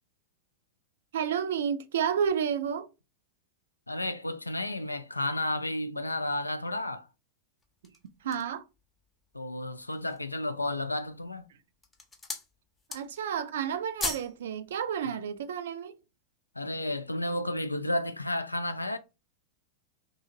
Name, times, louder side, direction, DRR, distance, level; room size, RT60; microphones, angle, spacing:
voice 1, 1.1-2.9 8.2-8.6 12.9-15.9, right 8 dB, 60° right, 0.3 m, -30 dB
voice 2, 3.9-7.1 9.3-11.4 15.1-15.2 16.6-19.0, left 1 dB, 85° left, 0.3 m, -32 dB
sound 1, 7.6-8.6 9.2-9.3 9.8-10.3 11.0-11.4 11.7-12.5 12.8-13.3 13.6-14.4 14.7-14.8, left 3 dB, 15° left, 0.6 m, -37 dB
2.7 x 2.7 x 2.6 m
figure-of-eight pair, 90°, 0 cm